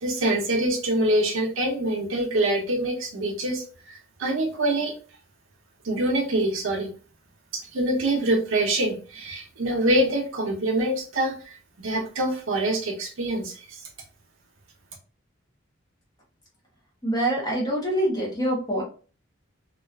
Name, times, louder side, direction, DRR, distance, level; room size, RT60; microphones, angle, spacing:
voice 1, 0.0-4.9 5.8-6.9 7.5-13.8, right 1 dB, 80° right, 2 dB, 0.7 m, -25 dB
voice 2, 17.0-18.8, right 1 dB, 20° left, -2 dB, 0.7 m, -25 dB
2.4 x 2.3 x 2.2 m, 0.37 s
head